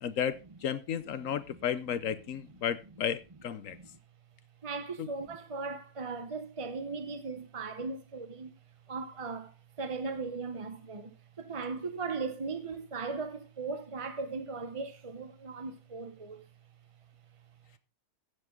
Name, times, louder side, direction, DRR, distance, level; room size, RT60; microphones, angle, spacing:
voice 1, 0.0-3.8 5.0-5.1, left 8 dB, 60° left, 1.0 m, -33 dB
voice 2, 4.6-8.5 8.9-9.5 9.8-11.1 11.4-16.4, right 4 dB, 30° right, 0.6 m, -38 dB
15.0 x 7.8 x 3.7 m
omnidirectional pair, 1.9 m